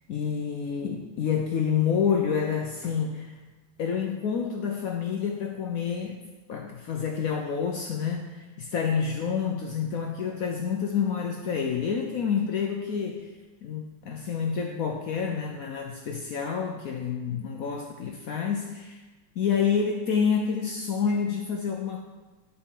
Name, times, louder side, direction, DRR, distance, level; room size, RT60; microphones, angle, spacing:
voice 1, 0.1-3.3 3.8-6.2 6.5-13.3 13.6-19.0 19.4-22.0, left 6 dB, 70° left, 1 dB, 0.8 m, -28 dB
11.0 x 4.1 x 3.7 m, 1.2 s
omnidirectional pair, 2.0 m